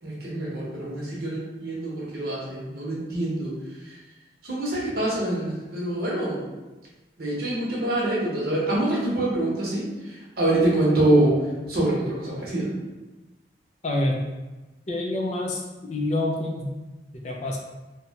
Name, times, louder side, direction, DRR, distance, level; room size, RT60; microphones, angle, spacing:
voice 1, 0.0-4.0 4.4-6.4 7.2-12.7, right 1 dB, 55° right, -5 dB, 0.8 m, -25 dB
voice 2, 13.8-14.2 14.9-15.6 15.9-16.7 17.2-17.6, left 1 dB, 35° left, -1 dB, 0.3 m, -26 dB
2.8 x 2.1 x 2.7 m, 1.1 s
head